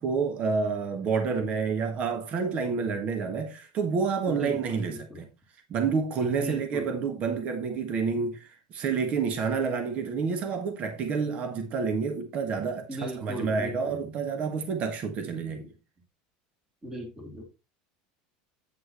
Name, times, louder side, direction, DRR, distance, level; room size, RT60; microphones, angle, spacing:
voice 1, 0.0-5.3 5.7-15.7, right 5 dB, 35° right, 1.5 m, -29 dB
voice 2, 4.4-5.2 6.4-6.8 12.9-14.0 16.8-17.4, equal, 15° right, 2.4 m, -37 dB
8.6 x 7.6 x 3.1 m
supercardioid pair, 155°, 4 cm